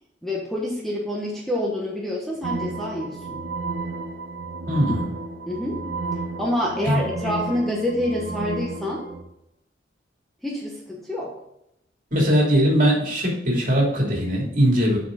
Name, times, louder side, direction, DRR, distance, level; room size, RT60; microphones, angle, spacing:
voice 1, 0.2-3.4 5.5-5.9 6.1-9.1 10.4-11.3, left 1 dB, ahead, -3 dB, 1.1 m, -27 dB
sound 1, 2.4-9.2, right 3 dB, 70° right, 1.0 m, -32 dB
voice 2, 4.7-5.1 6.8-7.0 12.1-15.0, equal, 45° right, -1 dB, 2.7 m, -20 dB
7.7 x 5.7 x 3.9 m, 0.80 s
head